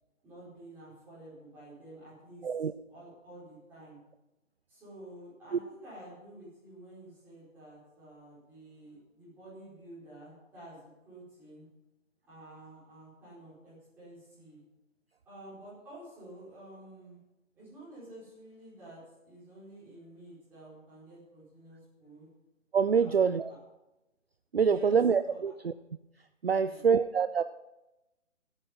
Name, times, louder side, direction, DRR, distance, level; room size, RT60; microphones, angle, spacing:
voice 1, 0.2-2.5 2.9-4.0 4.7-11.7 12.2-14.6 15.2-17.2 17.5-22.3 22.9-23.6 24.6-25.0 25.2-25.4 26.5-26.9, right 1 dB, 5° right, -11 dB, 4.8 m, -50 dB
voice 2, 22.7-23.5 24.5-25.7 26.4-27.4, right 6 dB, 50° right, 12 dB, 0.5 m, -25 dB
17.5 x 9.1 x 5.6 m, 0.97 s
hypercardioid pair, 175°, 39 cm